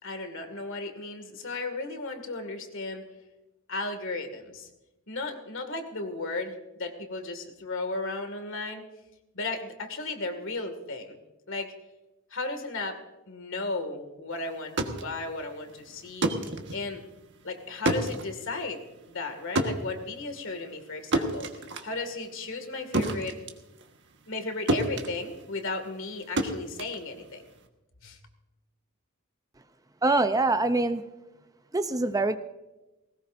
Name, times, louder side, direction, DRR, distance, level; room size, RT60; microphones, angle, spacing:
voice 1, 0.0-3.1 3.7-4.7 5.1-8.8 9.3-11.2 11.5-11.7 12.3-16.4 16.7-17.0 17.4-23.4 24.3-27.4 28.0-28.2, left 3 dB, 65° left, 8 dB, 2.2 m, -35 dB
sound 1, 14.5-24.4 24.7-27.7, right 1 dB, 55° right, 1.5 m, -31 dB
voice 2, 30.0-31.0 31.7-32.4, right 2 dB, 15° right, 9 dB, 0.6 m, -24 dB
20.0 x 18.0 x 2.6 m, 1.0 s
head